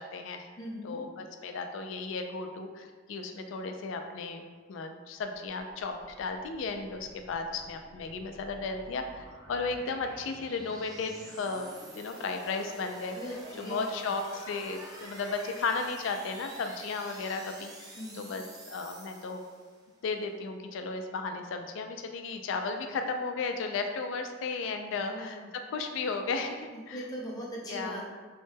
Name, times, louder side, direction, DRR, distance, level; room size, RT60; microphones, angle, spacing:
voice 1, 0.0-0.5 0.8-11.7 12.0-13.2 13.6-19.4 20.0-27.0 27.7-28.0, left 4 dB, 80° left, 6 dB, 0.3 m, -35 dB
voice 2, 0.6-1.0 13.1-14.1 18.0-18.3 24.8-25.4 26.7-28.0, equal, 20° left, -5 dB, 0.6 m, -40 dB
sound 1, 5.4-19.9, right 1 dB, 20° right, 0.4 m, -49 dB
3.1 x 2.1 x 3.2 m, 1.5 s
head